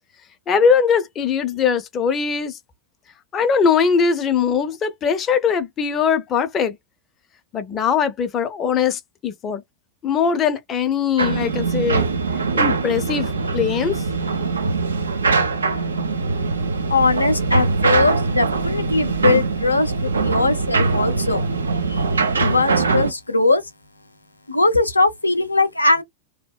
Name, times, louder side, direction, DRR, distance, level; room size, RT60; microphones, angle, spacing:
voice 1, 0.5-2.6 3.3-6.8 7.5-9.6 10.0-12.1 12.5-14.0, left 6 dB, 25° left, 0.5 m, -21 dB
sound 1, 11.2-23.1, right 4 dB, 75° right, 0.4 m, -22 dB
voice 2, 16.9-21.4 21.9-23.6 24.5-26.0, left 3 dB, 85° left, 0.3 m, -20 dB
2.7 x 2.0 x 2.2 m
figure-of-eight pair, 90°, 0 cm